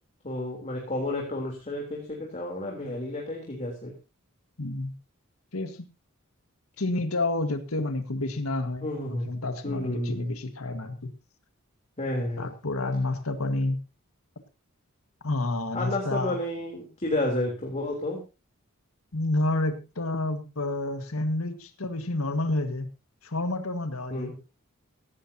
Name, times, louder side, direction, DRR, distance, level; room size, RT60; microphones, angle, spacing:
voice 1, 0.2-3.9 8.8-9.3 9.6-10.3 12.0-12.5 15.7-18.2 24.1-24.3, left 1 dB, 35° left, -1 dB, 3.5 m, -31 dB
voice 2, 4.6-4.9 5.5-5.8 6.8-11.1 12.4-13.8 15.2-16.4 19.1-22.9 23.2-24.3, left 2 dB, 85° left, 8 dB, 1.7 m, -29 dB
16.5 x 16.0 x 2.9 m, 0.29 s
head